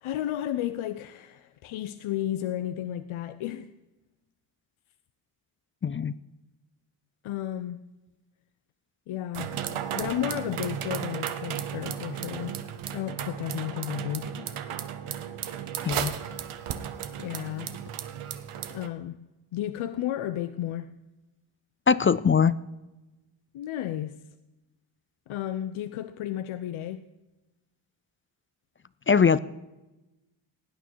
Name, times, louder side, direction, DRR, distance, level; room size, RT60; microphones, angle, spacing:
voice 1, 0.0-3.7 7.2-7.8 9.1-9.5 9.9-12.6 12.9-14.6 17.2-17.8 18.7-19.3 19.5-21.0 23.5-24.2 25.3-27.0, left 12 dB, 85° left, 0.6 m, -33 dB
voice 2, 5.8-6.1 15.8-16.1 21.9-22.6 29.1-29.4, left 6 dB, 30° left, 0.3 m, -21 dB
sound 1, 9.3-18.9, right 9 dB, 85° right, 0.9 m, -34 dB
16.5 x 9.2 x 4.5 m
cardioid pair, 65°, 49 cm